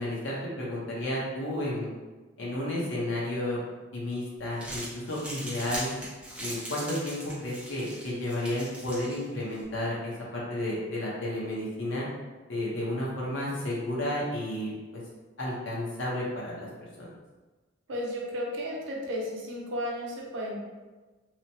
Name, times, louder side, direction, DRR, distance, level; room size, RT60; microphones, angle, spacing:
voice 1, 0.0-1.9 2.4-3.6 3.9-5.9 6.4-12.1 12.5-14.7 15.4-16.7 17.0-17.1, left 1 dB, 70° left, -5 dB, 0.8 m, -32 dB
Crumpling crinkling, 4.4-9.6, right 1 dB, 5° right, 0.6 m, -41 dB
voice 2, 17.9-20.6, equal, 65° right, -3 dB, 0.6 m, -33 dB
2.9 x 2.1 x 2.7 m, 1.3 s
head